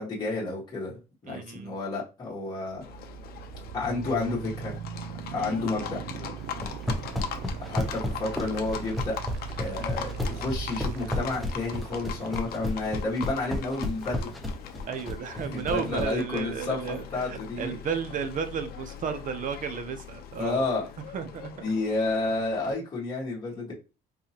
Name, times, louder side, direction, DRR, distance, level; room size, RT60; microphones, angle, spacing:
voice 1, 0.0-2.8 3.7-4.7 5.3-6.0 7.6-9.2 9.6-14.3 15.3-17.8 20.3-20.9 21.6-23.7, left 3 dB, 25° left, 1.4 m, -31 dB
voice 2, 1.3-1.7 5.4-5.6 14.8-20.7 21.1-21.5, right 6 dB, 50° right, 0.7 m, -33 dB
sound 1, 2.7-14.7, right 9 dB, 85° right, 0.4 m, -40 dB
Livestock farm animals working animals, 2.8-22.7, left 8 dB, 65° left, 0.6 m, -41 dB
sound 2, 6.6-16.1, left 1 dB, ahead, 0.8 m, -31 dB
3.9 x 2.8 x 2.8 m
cardioid pair, 110°, 17 cm